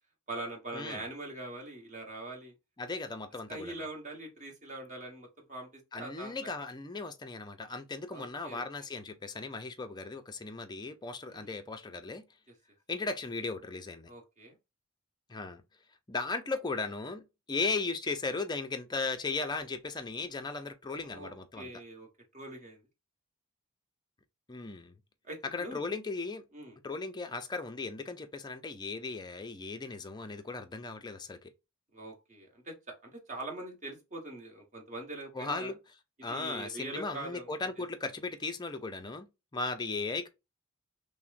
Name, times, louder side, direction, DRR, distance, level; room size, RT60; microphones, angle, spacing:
voice 1, 0.3-2.5 3.5-6.4 8.1-8.6 11.3-11.5 14.1-14.6 21.0-22.8 25.2-25.9 26.5-26.8 31.9-35.7 36.2-37.5, right 2 dB, 35° right, 1.3 m, -43 dB
voice 2, 2.8-3.8 5.9-12.2 12.9-14.1 15.3-15.6 16.1-21.7 24.5-24.9 25.5-26.4 26.8-31.5 35.3-35.8 36.2-39.3 39.5-40.3, left 3 dB, 20° left, 0.5 m, -37 dB
5.8 x 2.1 x 2.5 m
head